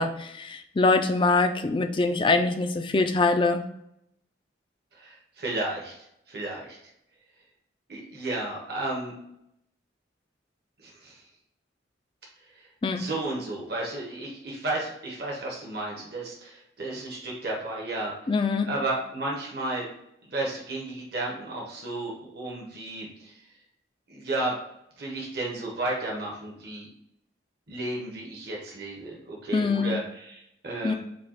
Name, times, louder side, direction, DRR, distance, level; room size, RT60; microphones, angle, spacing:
voice 1, 0.0-3.6 12.8-13.0 18.3-18.7 29.5-30.0 30.8-30.9, left 3 dB, 25° left, 6 dB, 0.3 m, -24 dB
voice 2, 4.9-5.9 6.3-6.8 7.9-9.1 10.8-11.2 12.9-18.3 18.7-19.9 20.3-23.4 24.1-24.6 25.0-26.9 27.7-30.9, right 2 dB, 55° right, -2 dB, 1.0 m, -33 dB
5.1 x 2.3 x 4.2 m, 0.78 s
head